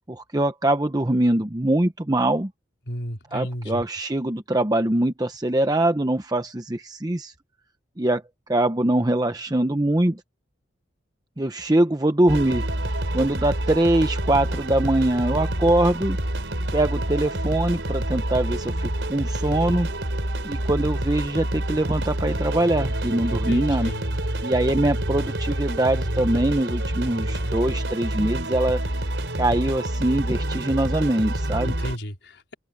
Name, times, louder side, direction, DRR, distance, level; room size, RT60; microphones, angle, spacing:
voice 1, 0.1-2.5 3.3-7.3 8.0-8.2 8.5-10.2 11.4-12.7 13.1-16.2 16.7-19.9 20.4-23.9 24.4-28.8 29.4-31.7, right 1 dB, 20° right, 0.8 m, -23 dB
voice 2, 2.9-3.8 23.3-24.0 31.6-32.5, equal, 75° left, 4.7 m, -33 dB
sound 1, 12.3-32.0, right 1 dB, 85° right, 4.2 m, -27 dB
open air
head